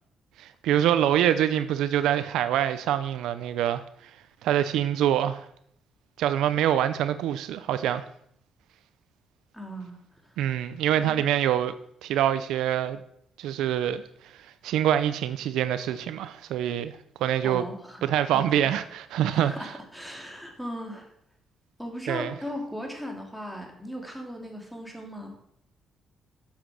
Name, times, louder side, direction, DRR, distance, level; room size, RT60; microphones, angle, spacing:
voice 1, 0.4-3.8 4.4-5.4 6.2-8.0 10.4-11.7 12.0-13.0 13.4-14.0 14.6-16.9 17.2-17.6 18.0-19.5 22.1-22.3, right 11 dB, 85° right, 0.7 m, -25 dB
voice 2, 9.5-10.4 11.0-11.3 17.4-18.8 19.3-21.1 21.8-25.4, equal, ahead, 3.3 m, -38 dB
11.5 x 7.4 x 6.4 m
cardioid pair, 90°, 0 cm